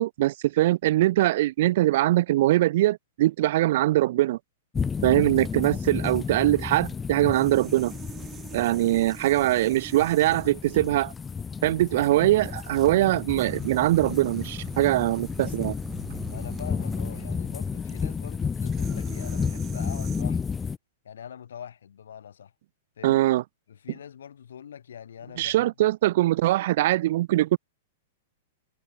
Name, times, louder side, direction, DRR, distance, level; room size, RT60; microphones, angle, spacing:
voice 1, 0.0-4.4 5.0-7.9 8.5-11.1 11.6-15.7 23.0-23.4 25.4-27.6, right 15 dB, 60° right, 1.0 m, -22 dB
sound 1, 4.7-20.8, left 5 dB, 15° left, 0.3 m, -32 dB
sound 2, 7.3-20.2, right 11 dB, 25° right, 1.7 m, -45 dB
voice 2, 16.3-20.6 21.0-22.5 23.0-23.2 23.7-25.7, left 8 dB, 85° left, 3.2 m, -43 dB
hypercardioid pair, 135°, 0 cm